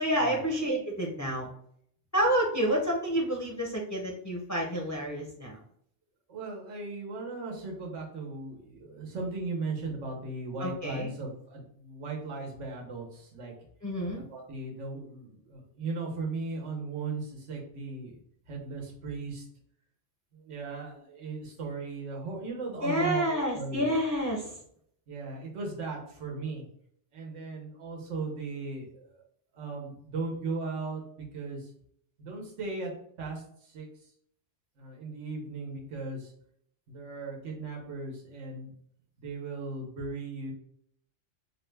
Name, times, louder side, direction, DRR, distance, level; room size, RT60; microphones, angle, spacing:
voice 1, 0.0-1.5 2.1-5.6 10.6-11.1 13.8-14.2 22.8-24.6, equal, 25° left, -2 dB, 0.4 m, -29 dB
voice 2, 6.3-13.5 14.1-18.1 18.5-19.5 20.3-23.9 25.1-26.6 27.1-29.2 29.5-31.7 32.2-32.9 33.2-34.1 34.8-36.3 36.9-38.7 39.2-40.5, right 3 dB, 90° right, -1 dB, 1.2 m, -37 dB
4.7 x 2.2 x 3.2 m, 0.67 s
omnidirectional pair, 1.2 m